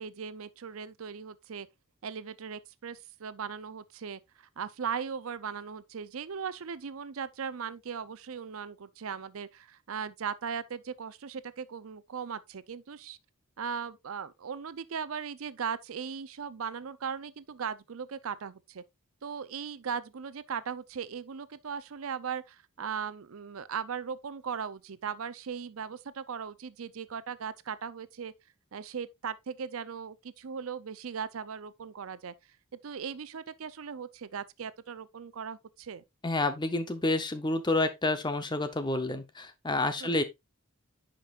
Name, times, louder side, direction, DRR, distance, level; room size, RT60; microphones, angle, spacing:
voice 1, 0.0-1.7 2.0-4.2 4.6-13.2 13.6-18.8 19.2-28.3 28.7-32.3 32.8-36.0 40.0-40.2, right 6 dB, 75° right, 0.5 m, -38 dB
voice 2, 36.2-40.2, left 2 dB, 20° left, 0.7 m, -29 dB
10.0 x 5.2 x 2.4 m
head